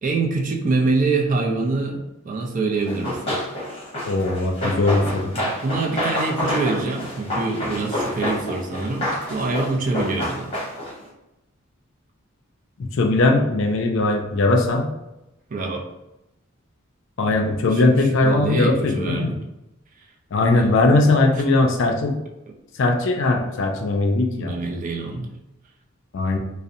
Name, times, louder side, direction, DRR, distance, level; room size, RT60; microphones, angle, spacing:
voice 1, 0.0-2.0 2.2-3.4 5.3-10.5 15.5-15.8 17.7-19.4 20.5-20.7 24.4-25.3, right 3 dB, 40° right, 1 dB, 0.3 m, -25 dB
Run, 2.9-11.0, left 1 dB, 25° left, 0.9 m, -28 dB
voice 2, 4.1-5.3 12.8-14.8 17.2-19.3 20.3-22.1 22.8-24.6 26.1-26.4, left 2 dB, 60° left, 2 dB, 0.4 m, -19 dB
2.6 x 2.0 x 2.5 m, 0.93 s
head